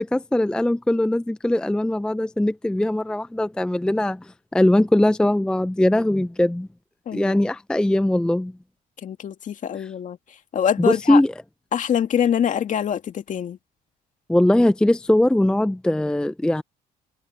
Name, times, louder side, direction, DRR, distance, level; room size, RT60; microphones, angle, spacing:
voice 1, 0.0-4.2 4.5-6.7 7.1-8.5 10.8-11.3 14.3-16.6, left 1 dB, 5° left, 0.5 m, -20 dB
voice 2, 7.1-7.4 9.0-10.2 10.5-11.2 11.7-13.6, left 9 dB, 50° left, 2.3 m, -24 dB
cardioid pair, 110°, 17 cm